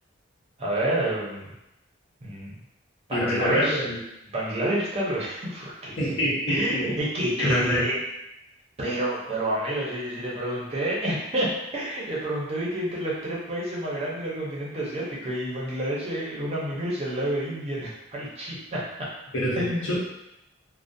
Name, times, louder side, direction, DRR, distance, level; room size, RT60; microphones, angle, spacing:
voice 1, 0.6-1.5 2.2-2.6 3.1-3.8 4.3-6.1 6.5-8.0 8.8-19.1 19.5-20.0, right 1 dB, 30° right, -6 dB, 0.6 m, -29 dB
voice 2, 3.1-4.0 6.0-6.9 7.4-7.8 19.3-20.0, equal, 80° left, -6 dB, 0.8 m, -26 dB
2.3 x 2.0 x 2.6 m, 0.88 s
head